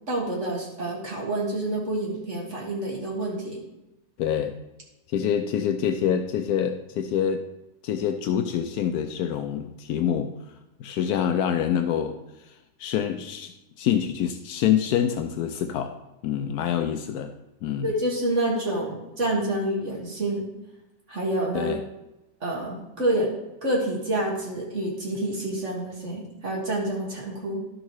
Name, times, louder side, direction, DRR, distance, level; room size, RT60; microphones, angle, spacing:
voice 1, 0.1-3.6 17.8-20.5 21.1-21.7 22.4-23.3 23.6-27.6, right 1 dB, 40° right, -3 dB, 1.9 m, -28 dB
voice 2, 4.2-4.5 5.1-7.4 7.8-10.3 10.8-12.2 12.8-13.5 13.8-15.9 16.2-17.3 17.6-17.9 21.5-21.8, left 9 dB, 80° left, 7 dB, 0.8 m, -26 dB
11.5 x 6.5 x 3.1 m, 0.95 s
omnidirectional pair, 2.2 m